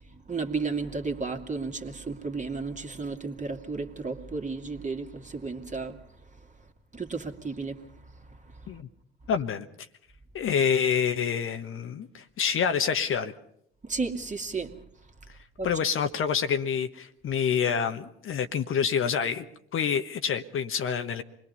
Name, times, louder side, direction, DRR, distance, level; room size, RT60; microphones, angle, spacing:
voice 1, 0.0-6.0 6.9-7.8 13.8-14.7 15.6-15.7, right 4 dB, 25° right, 2.5 m, -33 dB
voice 2, 9.3-9.7 10.3-13.3 15.6-19.5 19.7-21.2, left 7 dB, 45° left, 1.2 m, -27 dB
27.5 x 21.5 x 5.6 m
figure-of-eight pair, 55°, 31 cm